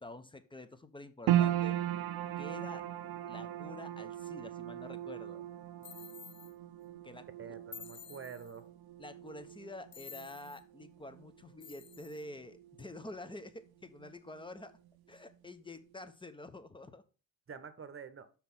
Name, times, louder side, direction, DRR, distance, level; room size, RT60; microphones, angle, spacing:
voice 1, 0.0-1.8 2.4-2.8 3.3-5.4 7.0-7.6 9.0-14.7 15.1-17.0, left 2 dB, 10° left, 11 dB, 0.9 m, -48 dB
sound 1, 1.3-13.7 13.9-14.9 15.3-15.4, right 12 dB, 65° right, 0.6 m, -38 dB
sound 2, 5.8-6.5 7.7-8.6 9.9-10.6 11.6-12.2, left 7 dB, 30° left, 0.4 m, -51 dB
voice 2, 7.4-8.7 17.5-18.3, right 6 dB, 30° right, 12 dB, 1.1 m, -47 dB
5.8 x 4.4 x 5.5 m, 0.36 s
hypercardioid pair, 55°, 40 cm